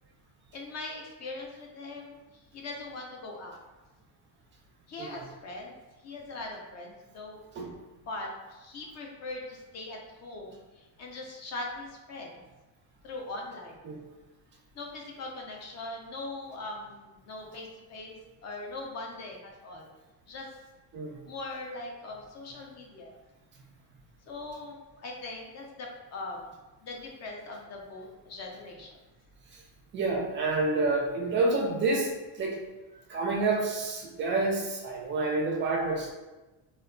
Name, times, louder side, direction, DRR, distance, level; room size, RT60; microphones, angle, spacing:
voice 1, 0.5-3.6 4.9-5.7 6.0-7.4 7.9-12.4 13.0-13.8 14.7-19.9 20.3-20.5 21.3-23.1 24.3-26.5 26.8-29.0, left 2 dB, 35° left, 0 dB, 0.4 m, -41 dB
voice 2, 29.9-32.6 33.1-36.1, right 3 dB, 25° right, 0 dB, 0.3 m, -28 dB
2.2 x 2.1 x 3.6 m, 1.1 s
cardioid pair, 145°, 47 cm